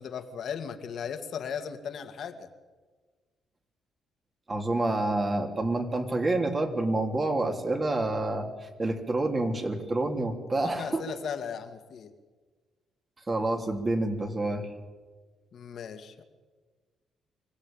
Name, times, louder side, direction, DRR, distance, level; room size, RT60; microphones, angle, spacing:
voice 1, 0.0-2.5 10.6-12.1 15.5-16.2, left 7 dB, 60° left, 7 dB, 2.2 m, -37 dB
voice 2, 4.5-11.1 13.3-14.7, right 2 dB, 30° right, 4 dB, 3.3 m, -28 dB
25.0 x 17.0 x 9.0 m, 1.4 s
cardioid pair, 90°, 0 cm